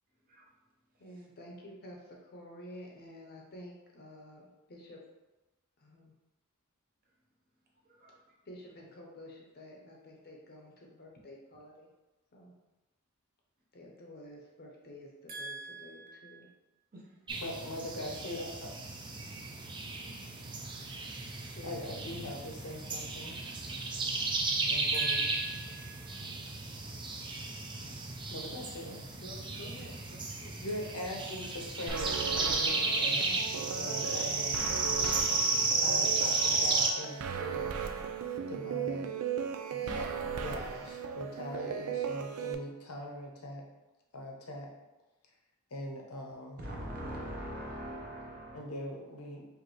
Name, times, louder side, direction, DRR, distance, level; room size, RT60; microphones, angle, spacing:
voice 1, 1.0-5.0 5.8-6.1 8.4-11.9 12.3-12.5 13.7-16.5 17.9-18.5 21.5-22.1 29.2-30.6, left 1 dB, 45° left, -1 dB, 0.7 m, -50 dB
voice 2, 15.3-16.5 16.9-17.0 20.7-20.8 24.9-26.2 46.6-48.6, right 1 dB, 45° right, -3 dB, 0.9 m, -43 dB
sound 1, 17.3-36.9, right 3 dB, 20° right, 0.4 m, -33 dB
voice 3, 17.4-18.7 21.6-23.4 24.7-25.3 28.3-29.0 30.6-33.3 33.7-34.6 35.8-37.8 38.5-39.1 39.7-40.1 40.4-43.6 44.1-44.7 45.7-46.6 48.5-49.5, left 1 dB, 80° left, 0 dB, 0.8 m, -41 dB
sound 2, 31.9-42.5, right 7 dB, 90° right, 0.4 m, -37 dB
5.1 x 2.6 x 3.0 m, 1.0 s
head